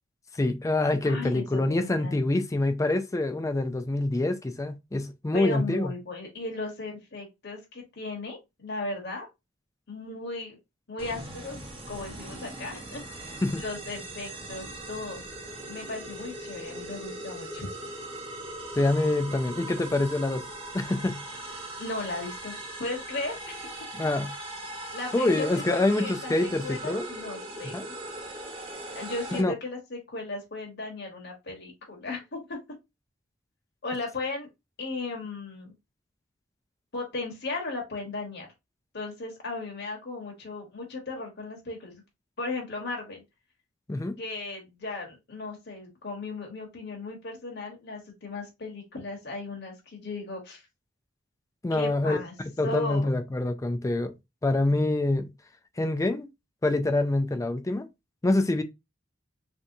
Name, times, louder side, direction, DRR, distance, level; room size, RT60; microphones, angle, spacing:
voice 1, 0.3-5.9 13.4-13.6 18.7-20.4 20.7-21.4 24.0-24.3 25.1-27.1 27.6-27.9 29.3-29.5 43.9-44.1 51.6-54.1 54.4-55.3 55.8-56.3 56.6-57.9 58.2-58.6, left 2 dB, 15° left, 0.4 m, -26 dB
voice 2, 1.0-2.2 5.3-9.3 9.9-10.6 10.9-11.6 11.9-15.2 15.7-17.7 21.8-23.6 24.0-24.1 24.9-27.8 28.9-32.6 33.8-34.5 34.8-35.7 36.9-38.5 38.9-42.0 42.4-43.2 44.2-50.6 51.7-52.3 52.6-53.1, left 3 dB, 55° left, 1.1 m, -36 dB
sound 1, 11.0-29.4, right 1 dB, 30° right, 0.8 m, -40 dB
3.4 x 2.7 x 2.6 m
head